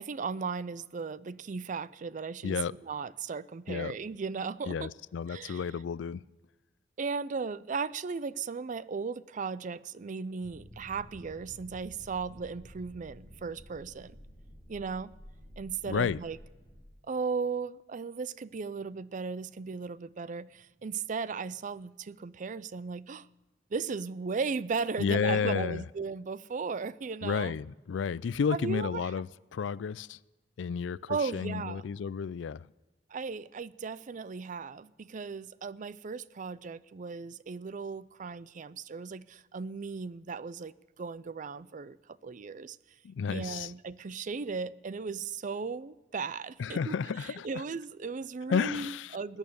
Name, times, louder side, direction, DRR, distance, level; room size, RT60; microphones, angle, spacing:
voice 1, 0.0-2.6 2.8-4.9 5.3-5.6 7.0-14.2 14.7-15.1 15.6-16.4 17.1-23.3 23.7-27.5 28.5-29.1 31.1-31.8 33.1-42.8 43.3-47.0 47.4-49.4, right 5 dB, 45° right, 0.4 m, -36 dB
voice 2, 2.4-2.7 3.7-4.0 4.7-6.2 15.9-16.2 25.0-25.8 27.2-30.2 30.6-32.7 43.0-43.7 46.6-47.6 48.5-49.2, left 6 dB, 85° left, 0.4 m, -32 dB
sound 1, 10.4-16.8, equal, 10° right, 4.7 m, -52 dB
20.5 x 9.1 x 6.9 m
head